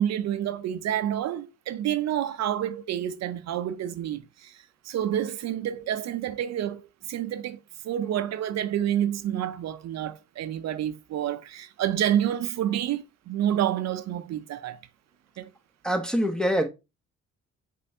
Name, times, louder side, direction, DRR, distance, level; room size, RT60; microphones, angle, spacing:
voice 1, 0.0-4.6 4.8-7.6 7.8-14.8 15.4-15.5, right 10 dB, 60° right, 0.5 m, -28 dB
voice 2, 15.8-16.7, equal, ahead, 0.7 m, -24 dB
5.2 x 3.3 x 2.6 m
cardioid pair, 90°, 30 cm